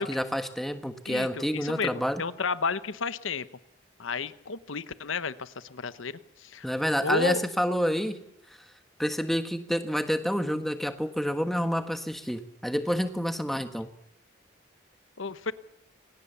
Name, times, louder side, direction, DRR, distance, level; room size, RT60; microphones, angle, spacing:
voice 1, 0.0-2.2 6.6-8.2 9.0-13.9, equal, ahead, 8 dB, 1.4 m, -28 dB
voice 2, 1.1-3.5 4.0-6.7 7.0-7.4 15.2-15.5, left 5 dB, 80° left, 14 dB, 0.9 m, -32 dB
23.5 x 19.0 x 6.9 m, 0.81 s
head